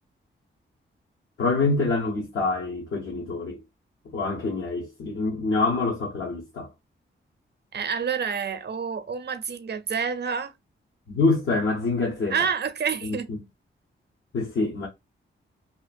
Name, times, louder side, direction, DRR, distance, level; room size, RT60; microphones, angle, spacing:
voice 1, 1.4-3.6 4.1-6.7 11.1-12.4 13.0-13.4 14.3-14.9, left 3 dB, 70° left, 0.9 m, -26 dB
voice 2, 7.7-10.5 12.3-13.3, right 6 dB, 55° right, 0.6 m, -28 dB
2.9 x 2.4 x 2.5 m
cardioid pair, 60°, 21 cm